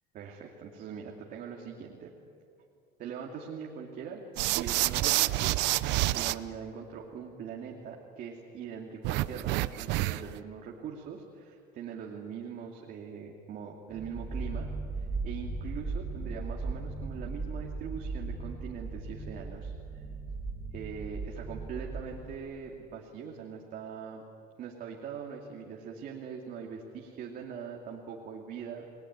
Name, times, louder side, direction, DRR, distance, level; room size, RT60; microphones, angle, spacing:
voice 1, 0.1-2.1 3.0-4.2 4.5-5.6 5.8-14.7 15.0-20.1 20.7-24.2 24.6-28.9, right 7 dB, 55° right, 0 dB, 2.6 m, -42 dB
sound 1, 4.4-6.3 9.0-10.4, right 18 dB, 90° right, 0.8 m, -28 dB
sound 2, 13.9-22.3, right 3 dB, 5° right, 1.9 m, -37 dB
29.5 x 21.0 x 9.7 m, 2.5 s
cardioid pair, 165°, 18 cm